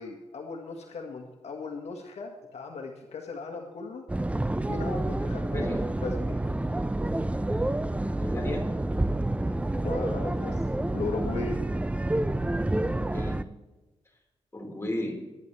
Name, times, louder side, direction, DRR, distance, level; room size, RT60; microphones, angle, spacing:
voice 1, 0.0-4.0 4.7-5.6 6.0-6.4 9.8-10.6 10.9-11.6, left 4 dB, 75° left, 1 dB, 1.7 m, -37 dB
sound 1, 4.1-13.4, right 1 dB, 10° right, 0.6 m, -28 dB
voice 2, 8.2-8.7 13.1-13.4 14.5-15.2, left 1 dB, 25° left, -1 dB, 4.8 m, -34 dB
21.5 x 9.9 x 3.4 m, 1.1 s
cardioid pair, 75°, 11 cm